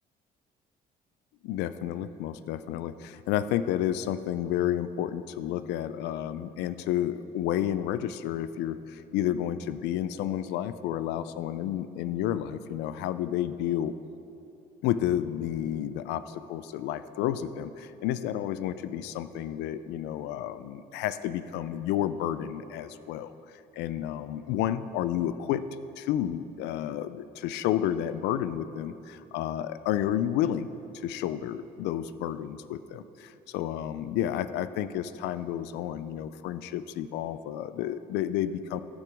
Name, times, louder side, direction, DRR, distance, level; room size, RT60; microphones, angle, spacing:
voice 1, 1.4-14.0 14.8-23.4 23.7-25.7 26.0-38.8, left 11 dB, 90° left, 13 dB, 0.4 m, -31 dB
15.5 x 6.1 x 3.5 m, 2.8 s
cardioid pair, 110°, 17 cm